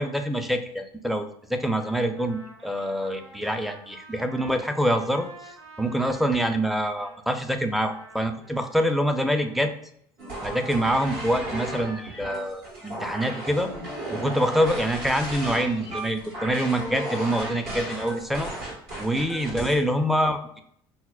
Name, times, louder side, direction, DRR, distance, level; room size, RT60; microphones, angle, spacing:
voice 1, 0.0-5.3 5.8-9.7 10.4-13.7 14.1-18.5 19.0-20.6, equal, ahead, 5 dB, 0.5 m, -25 dB
Trumpet, 1.7-7.2 7.7-9.6, right 3 dB, 90° right, 0.7 m, -49 dB
sound 1, 10.2-19.8, right 1 dB, 70° right, 1.5 m, -35 dB
5.5 x 2.0 x 2.3 m, 0.67 s
hypercardioid pair, 75°, 12 cm